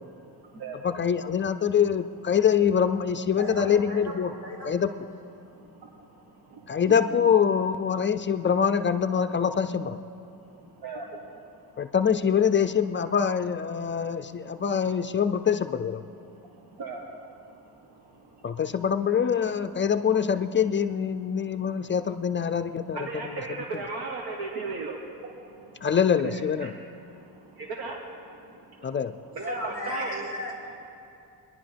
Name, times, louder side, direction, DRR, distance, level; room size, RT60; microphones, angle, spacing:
voice 1, 0.8-4.3 4.7-4.9 6.7-10.0 11.8-16.0 18.4-23.0 25.8-26.7 28.8-29.1, left 7 dB, 35° left, 9 dB, 0.4 m, -24 dB
voice 2, 3.4-4.8 29.3-30.5, equal, 55° right, -6 dB, 3.8 m, -35 dB
voice 3, 22.9-25.0 26.2-26.3 26.6-26.7 27.6-28.0 29.4-30.2, right 4 dB, 85° right, 0 dB, 1.4 m, -35 dB
25.5 x 11.0 x 3.4 m, 2.6 s
cardioid pair, 125°, 37 cm